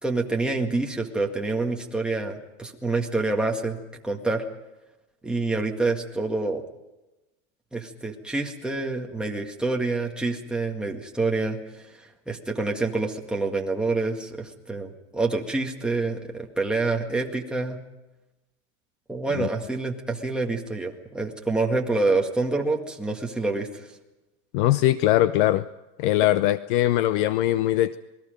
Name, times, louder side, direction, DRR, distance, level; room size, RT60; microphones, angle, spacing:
voice 1, 0.0-3.8 4.0-4.4 5.2-6.6 7.7-17.8 19.1-23.9, right 3 dB, ahead, 0 dB, 1.9 m, -27 dB
voice 2, 24.5-25.6 26.0-28.0, left 14 dB, 40° left, 15 dB, 0.6 m, -21 dB
28.0 x 21.0 x 5.2 m, 1.0 s
supercardioid pair, 150°, 38 cm